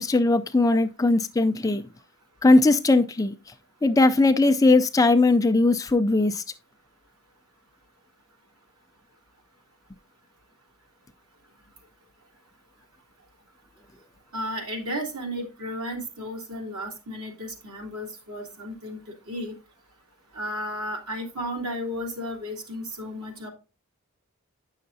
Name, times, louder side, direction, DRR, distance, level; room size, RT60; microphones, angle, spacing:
voice 1, 0.0-1.9 2.4-3.3 3.8-6.4, left 2 dB, 15° left, 0.4 m, -19 dB
voice 2, 14.3-19.5 20.3-23.5, equal, 85° right, 2.8 m, -33 dB
9.4 x 6.4 x 2.7 m
head